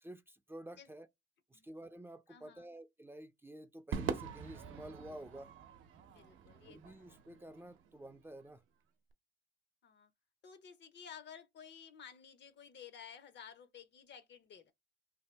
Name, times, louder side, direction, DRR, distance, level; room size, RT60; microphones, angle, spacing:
voice 1, 0.0-1.1 1.5-5.5 6.7-8.6, right 1 dB, 10° right, 0.4 m, -51 dB
voice 2, 2.3-2.7 6.1-7.1 9.8-10.1 10.4-14.7, left 8 dB, 65° left, 0.7 m, -54 dB
Crowd / Fireworks, 3.9-8.4, right 7 dB, 80° right, 0.6 m, -44 dB
2.7 x 2.7 x 4.3 m
cardioid pair, 90°, 20 cm